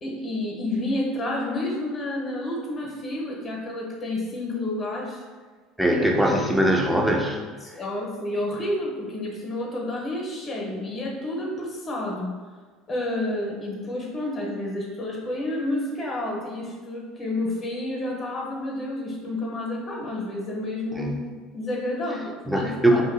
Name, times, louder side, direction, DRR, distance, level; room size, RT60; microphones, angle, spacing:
voice 1, 0.0-5.2 5.9-6.0 6.3-6.4 7.6-12.3 12.9-21.1 21.5-23.0, left 1 dB, 40° left, -3 dB, 1.0 m, -30 dB
voice 2, 5.8-7.4 21.0-21.2 22.5-23.0, right 1 dB, 5° right, 0 dB, 0.6 m, -21 dB
2.8 x 2.5 x 3.7 m, 1.4 s
hypercardioid pair, 85°, 0 cm